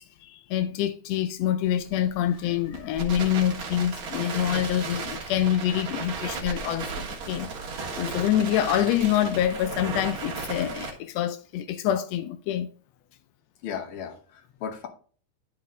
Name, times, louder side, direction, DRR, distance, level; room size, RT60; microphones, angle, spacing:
voice 1, 0.0-7.5 8.0-12.7, left 11 dB, 85° left, 1.4 m, -26 dB
Crackle, 1.6-10.9, right 4 dB, 50° right, 2.0 m, -35 dB
voice 2, 13.6-14.9, left 7 dB, 60° left, 1.6 m, -36 dB
12.0 x 4.0 x 3.7 m
omnidirectional pair, 3.5 m